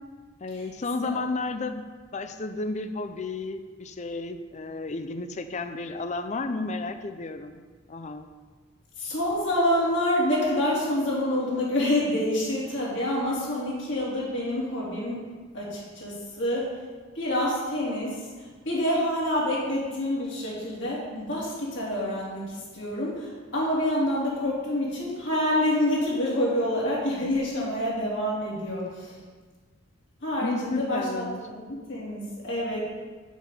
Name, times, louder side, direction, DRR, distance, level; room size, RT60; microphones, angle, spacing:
voice 1, 0.4-1.9 2.1-7.6 7.9-8.3 30.4-31.4, left 3 dB, 35° left, 8 dB, 0.5 m, -32 dB
voice 2, 9.0-15.2 15.5-16.7 17.1-29.2 30.2-32.9, left 1 dB, 60° left, -6 dB, 3.3 m, -27 dB
7.2 x 5.9 x 7.5 m, 1.4 s
head